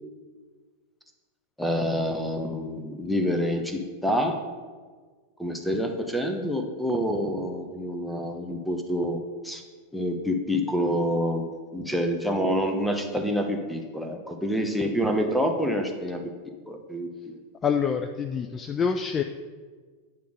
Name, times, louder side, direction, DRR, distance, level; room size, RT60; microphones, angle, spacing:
voice 1, 1.6-4.4 5.4-9.6 9.9-16.2 16.7-17.3, equal, ahead, 4 dB, 0.9 m, -27 dB
voice 2, 17.6-19.2, left 6 dB, 25° left, 7 dB, 0.3 m, -26 dB
9.4 x 3.4 x 6.3 m, 1.5 s
figure-of-eight pair, 90°, 0 cm